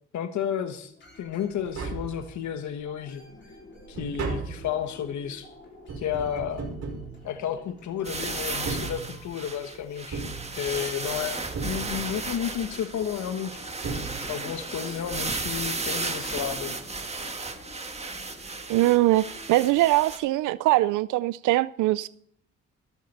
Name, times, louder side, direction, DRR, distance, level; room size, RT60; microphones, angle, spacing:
voice 1, 0.1-3.2 3.9-5.5 6.0-6.7 7.2-10.2 10.6-13.6 14.3-16.8, left 9 dB, 70° left, 1.3 m, -32 dB
sound 1, 1.0-19.8, left 2 dB, 40° left, 5.4 m, -51 dB
Tap, 1.3-1.4 1.6-2.7 3.1-7.9 8.5-9.6 10.1-11.1 11.5-12.4 13.4-13.5 13.8-14.7 14.9-15.0, right 4 dB, 55° right, 5.1 m, -36 dB
sound 2, 8.0-20.2, right 3 dB, 20° right, 2.0 m, -34 dB
voice 2, 18.7-22.1, right 17 dB, 80° right, 0.5 m, -22 dB
13.5 x 13.0 x 4.2 m
cardioid pair, 90°, 30 cm